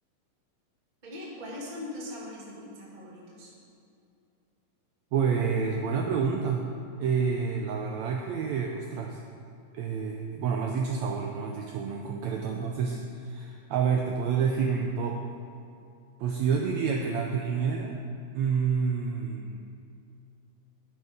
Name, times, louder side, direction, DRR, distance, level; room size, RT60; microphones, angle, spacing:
voice 1, 1.0-3.5, left 1 dB, 20° right, -5 dB, 1.3 m, -40 dB
voice 2, 5.1-6.6 7.0-9.2 9.7-15.2 16.2-18.0 18.3-19.6, right 6 dB, 80° right, 1 dB, 1.7 m, -28 dB
12.0 x 6.2 x 5.1 m, 2.5 s
omnidirectional pair, 3.7 m